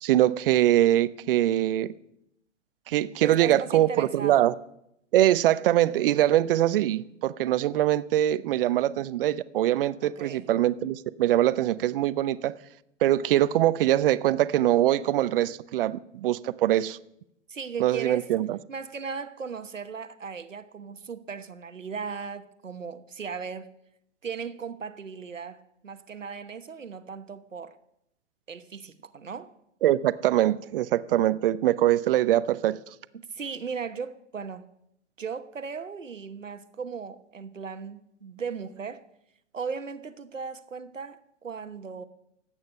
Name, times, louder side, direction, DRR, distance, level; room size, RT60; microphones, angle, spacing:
voice 1, 0.0-1.9 2.9-4.5 5.1-12.5 13.0-17.0 17.8-18.6 29.8-32.8, right 13 dB, 45° right, 0.7 m, -23 dB
voice 2, 3.2-4.5 10.0-10.5 17.5-18.3 18.7-23.7 24.2-27.8 28.5-29.5 33.1-34.6 35.2-39.0 39.5-42.1, right 5 dB, 85° right, 1.1 m, -37 dB
24.0 x 8.8 x 5.5 m
figure-of-eight pair, 115°, 37 cm